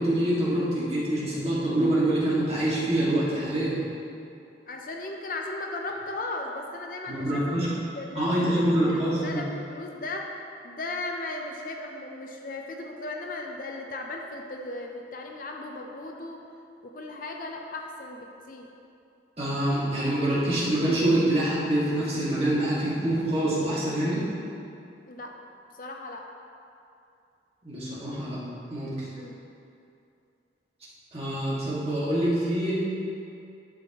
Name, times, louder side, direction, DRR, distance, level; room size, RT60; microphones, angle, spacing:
voice 1, 0.0-3.7 7.1-7.7 8.2-9.4 19.4-24.2 27.6-28.4 28.7-28.9 31.1-32.7, right 1 dB, 35° right, -8 dB, 2.0 m, -25 dB
voice 2, 4.7-7.7 8.0-10.3 10.6-16.4 16.9-18.7 25.1-25.3 25.8-26.2 29.2-29.4, left 2 dB, 50° left, 2 dB, 0.6 m, -36 dB
11.5 x 6.2 x 3.0 m, 2.6 s
head